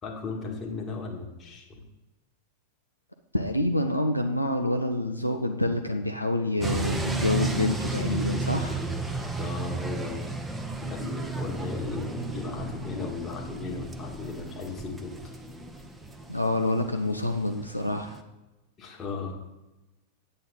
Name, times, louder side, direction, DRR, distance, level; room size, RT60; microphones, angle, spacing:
voice 1, 0.0-1.8 9.4-10.3 10.8-15.3 18.8-19.4, left 4 dB, 25° left, 0 dB, 1.9 m, -36 dB
voice 2, 3.3-8.8 16.3-18.2, left 1 dB, 85° left, 6 dB, 0.6 m, -27 dB
sound 1, 6.6-18.2, right 3 dB, 5° right, 0.8 m, -33 dB
8.8 x 8.7 x 3.9 m, 1.0 s
figure-of-eight pair, 90°, 0 cm